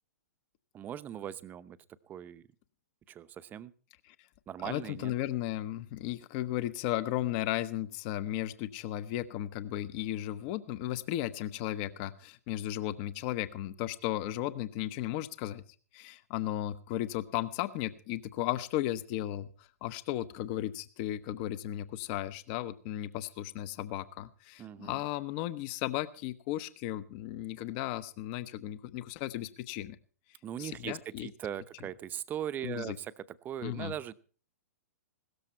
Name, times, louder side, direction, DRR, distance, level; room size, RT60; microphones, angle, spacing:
voice 1, 0.7-1.8 2.1-2.4 3.1-3.7 4.5-5.1 24.6-25.0 30.4-34.1, right 10 dB, 20° right, 16 dB, 0.8 m, -40 dB
voice 2, 4.6-15.6 15.9-30.0 30.6-31.3 32.6-33.0 33.6-33.9, left 14 dB, 40° left, 15 dB, 0.9 m, -35 dB
17.0 x 13.5 x 4.4 m, 0.41 s
figure-of-eight pair, 115°, 9 cm